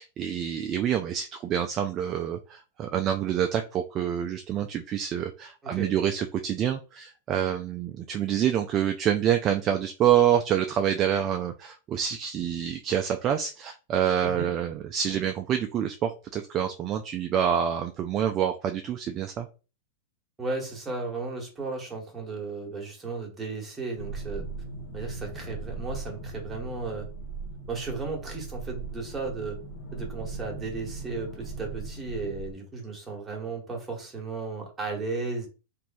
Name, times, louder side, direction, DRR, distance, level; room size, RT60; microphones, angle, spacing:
voice 1, 0.0-19.5, right 9 dB, 35° right, 5 dB, 0.3 m, -27 dB
voice 2, 20.4-24.5 24.9-27.1 27.7-29.6 29.9-35.5, right 3 dB, 15° right, 0 dB, 1.1 m, -35 dB
sound 1, 24.0-32.5, right 3 dB, 60° left, 0.9 m, -38 dB
3.0 x 2.6 x 2.3 m, 0.33 s
hypercardioid pair, 125°, 0 cm